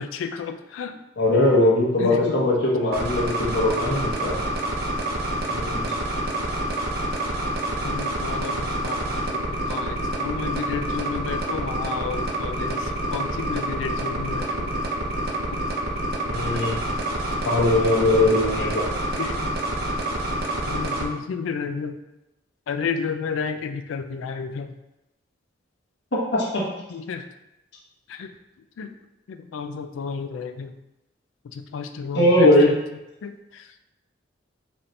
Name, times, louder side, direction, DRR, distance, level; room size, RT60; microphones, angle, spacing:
voice 1, 0.0-1.0 2.0-2.5 3.8-3.9 7.8-9.4 9.7-14.7 15.5-15.6 16.5-16.6 18.0-18.1 19.1-19.6 20.6-22.0 22.7-24.7 26.9-27.3 28.1-28.3 28.8-28.9 29.3-30.7 31.5-32.8 33.2-33.7, left 5 dB, 90° left, 8 dB, 0.3 m, -32 dB
voice 2, 1.2-4.4 5.5-5.9 16.3-16.8 17.5-18.9 26.1-26.6 32.1-32.7, left 1 dB, 65° left, -3 dB, 0.9 m, -20 dB
sound 1, 2.9-21.0, right 1 dB, 55° right, 0.6 m, -27 dB
4.1 x 2.6 x 3.2 m, 0.93 s
head